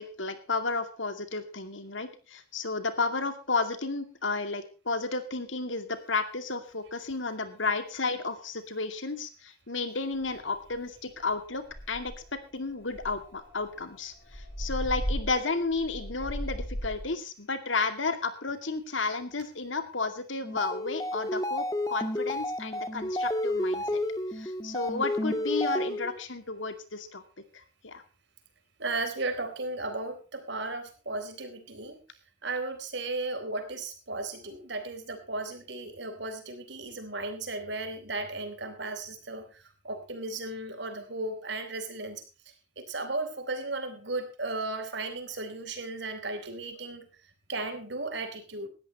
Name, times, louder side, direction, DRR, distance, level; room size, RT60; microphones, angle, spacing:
voice 1, 0.0-12.1 12.5-24.0 24.3-27.2 27.8-28.0, left 3 dB, 80° left, 9 dB, 2.4 m, -32 dB
sound 1, 10.2-10.3 10.7-11.0 11.3-11.4 11.7-12.4 12.9-17.1, equal, 50° left, 7.8 m, -36 dB
sound 2, 20.4-26.2, left 1 dB, 20° left, 1.4 m, -31 dB
voice 2, 28.8-32.0 32.4-42.2 42.8-47.1 47.5-48.7, right 2 dB, 65° right, 8 dB, 3.8 m, -35 dB
18.5 x 13.5 x 3.1 m, 0.33 s
head